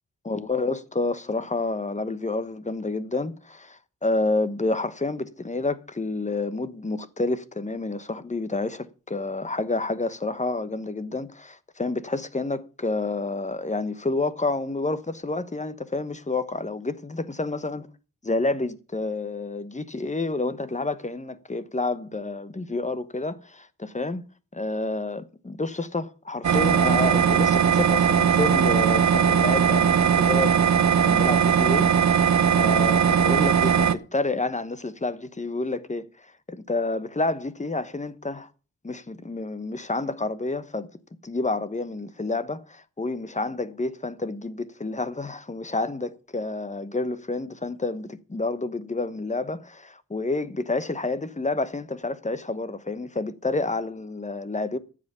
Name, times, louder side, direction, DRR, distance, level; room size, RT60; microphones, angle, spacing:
voice 1, 0.2-17.9 18.2-24.2 24.5-38.5 38.8-40.9 41.2-54.8, left 2 dB, 20° left, 1.0 m, -29 dB
sound 1, 26.4-34.0, right 7 dB, 55° right, 0.8 m, -19 dB
13.5 x 7.8 x 6.8 m
wide cardioid pair, 120°, 33 cm